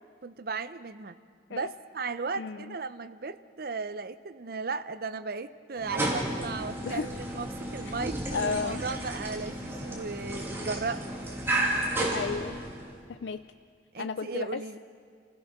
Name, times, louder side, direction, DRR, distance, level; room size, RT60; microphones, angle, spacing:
voice 1, 0.2-1.1 1.5-11.1 13.9-14.8, right 4 dB, 55° right, 12 dB, 0.7 m, -36 dB
voice 2, 2.4-2.8 6.8-7.1 7.8-7.9 8.3-8.8 12.1-12.6 13.1-13.4 14.0-14.8, left 5 dB, 75° left, 11 dB, 0.4 m, -33 dB
sound 1, 5.8-13.0, right 1 dB, 15° right, 2.7 m, -32 dB
29.0 x 16.0 x 6.0 m, 2.2 s
head